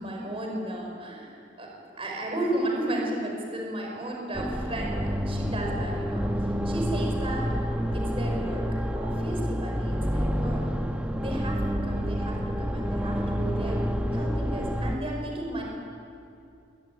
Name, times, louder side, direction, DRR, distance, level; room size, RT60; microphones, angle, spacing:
voice 1, 0.0-1.7 2.0-6.2 6.7-7.5 7.9-8.6 9.0-10.6 11.2-13.8 14.1-15.6, right 1 dB, 30° right, 0 dB, 5.3 m, -34 dB
sound 1, 4.3-15.0, equal, 5° right, 1.3 m, -28 dB
21.5 x 18.5 x 9.8 m, 2.6 s
head